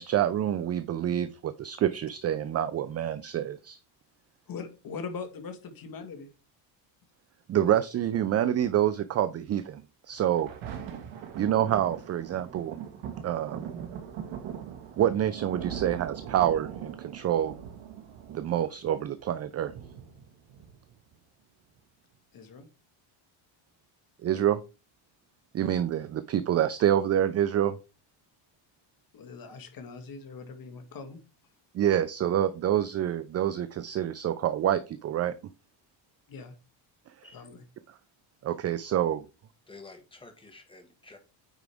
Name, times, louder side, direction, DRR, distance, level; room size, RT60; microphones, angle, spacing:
voice 1, 0.0-3.8 7.5-10.5 11.3-12.8 13.2-13.7 15.0-17.6 18.3-19.7 24.2-24.6 25.5-27.8 31.7-35.3 38.4-39.3, right 11 dB, 35° right, 0.4 m, -27 dB
voice 2, 4.5-6.3 22.3-22.7 25.7-25.8 29.1-31.2 36.3-36.5 37.3-37.6, left 5 dB, 45° left, 1.7 m, -41 dB
Thunder, 10.1-21.1 21.8-21.9, right 8 dB, 65° right, 1.9 m, -41 dB
voice 3, 39.7-41.2, left 3 dB, 10° left, 1.7 m, -50 dB
9.1 x 4.7 x 3.5 m
cardioid pair, 120°, 50 cm